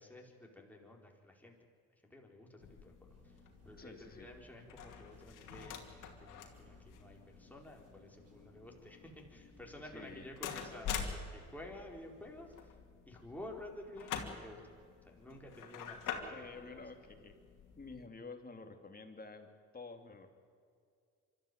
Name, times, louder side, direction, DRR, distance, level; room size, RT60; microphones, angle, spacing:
voice 1, 0.0-1.5 2.0-2.9 3.6-12.7 13.1-14.6 15.1-16.8, left 1 dB, 5° left, 0 dB, 4.5 m, -52 dB
sound 1, 2.6-18.1, left 7 dB, 75° left, 2.5 m, -47 dB
sound 2, 3.1-12.6, right 2 dB, 50° right, 4.6 m, -66 dB
voice 2, 3.8-4.3 9.8-10.3 16.2-17.4 17.7-20.3, left 3 dB, 30° left, 6 dB, 2.7 m, -50 dB
25.0 x 13.0 x 9.3 m, 2.2 s
supercardioid pair, 60°, 32 cm